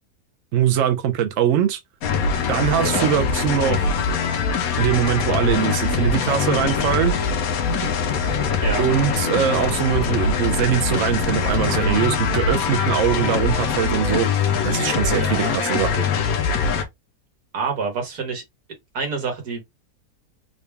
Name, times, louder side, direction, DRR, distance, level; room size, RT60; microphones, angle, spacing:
voice 1, 0.5-1.8 2.5-3.9 4.8-7.1 8.8-16.1, right 9 dB, 65° right, 0.9 m, -22 dB
sound 1, 2.0-16.8, left 5 dB, 70° left, 1.1 m, -22 dB
voice 2, 2.8-3.1 8.6-8.8 15.1-15.5 17.5-18.4 18.9-19.6, right 4 dB, 85° right, 1.7 m, -27 dB
3.9 x 2.2 x 3.3 m
omnidirectional pair, 1.6 m